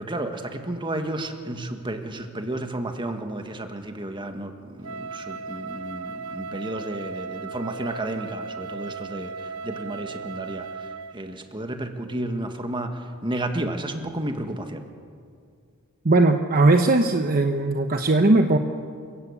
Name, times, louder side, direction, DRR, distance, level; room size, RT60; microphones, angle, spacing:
voice 1, 0.0-14.9, right 1 dB, 20° right, 6 dB, 1.7 m, -32 dB
Wind instrument woodwind instrument, 4.8-11.2, right 4 dB, 70° right, 0.9 m, -36 dB
voice 2, 16.0-18.6, right 2 dB, 40° right, 5 dB, 1.0 m, -19 dB
28.0 x 15.5 x 8.6 m, 2.2 s
head